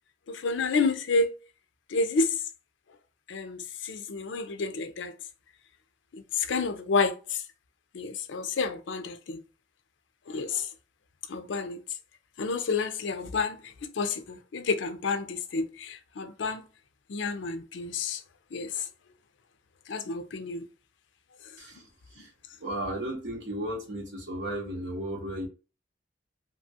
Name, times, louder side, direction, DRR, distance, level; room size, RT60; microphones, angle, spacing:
voice 1, 0.3-1.3 1.9-2.4 3.3-5.1 6.1-7.4 7.9-9.4 10.3-10.7 11.3-11.8 12.4-16.6 17.1-18.2 18.5-18.9 19.9-20.7, left 4 dB, 75° left, 0.5 m, -30 dB
voice 2, 22.6-25.5, right 1 dB, 65° right, 0.9 m, -34 dB
2.9 x 2.3 x 2.7 m
head